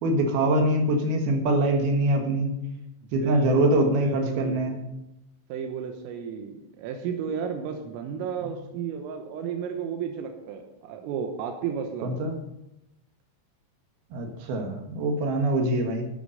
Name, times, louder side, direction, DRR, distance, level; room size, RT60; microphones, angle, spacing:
voice 1, 0.0-2.6 3.1-4.8 8.4-8.5 12.0-12.4 14.1-16.1, right 1 dB, 65° right, 4 dB, 2.9 m, -24 dB
voice 2, 3.2-4.7 5.5-12.2, right 7 dB, 90° right, 4 dB, 3.8 m, -33 dB
12.0 x 9.6 x 6.5 m, 0.88 s
omnidirectional pair, 5.7 m